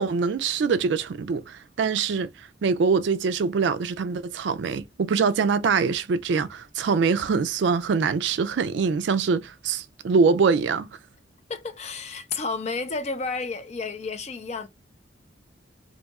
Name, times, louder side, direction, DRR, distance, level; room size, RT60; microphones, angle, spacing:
voice 1, 0.0-10.9, right 5 dB, 70° right, 0.3 m, -24 dB
voice 2, 11.5-14.7, left 4 dB, 35° left, 0.5 m, -31 dB
2.7 x 2.3 x 3.9 m
head